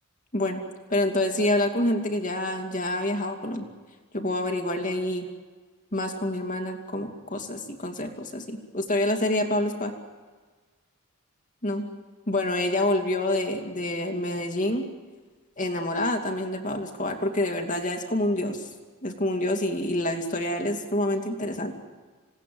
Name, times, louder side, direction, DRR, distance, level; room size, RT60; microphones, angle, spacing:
voice 1, 0.9-3.7 4.1-5.3 5.9-9.9 11.6-11.8 12.3-14.9 15.6-18.7 19.0-21.7, left 1 dB, 35° left, 4 dB, 2.6 m, -27 dB
27.5 x 18.5 x 9.4 m, 1.4 s
head